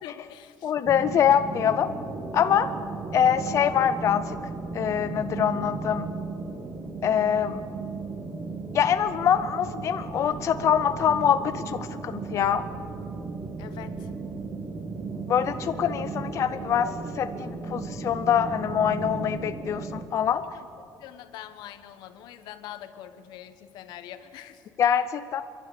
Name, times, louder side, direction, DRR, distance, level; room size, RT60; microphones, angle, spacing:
voice 1, 0.0-0.7 13.6-14.1 20.5-20.6 21.0-24.6, left 11 dB, 85° left, 10 dB, 1.3 m, -43 dB
voice 2, 0.6-1.9 2.3-2.7 3.1-4.4 4.7-6.1 7.0-7.6 8.7-12.6 15.3-20.4 24.8-25.4, left 8 dB, 45° left, 11 dB, 0.5 m, -24 dB
sound 1, 0.8-20.0, right 4 dB, 30° right, 1.7 m, -35 dB
28.5 x 11.5 x 8.5 m, 2.4 s
cardioid pair, 150°, 7 cm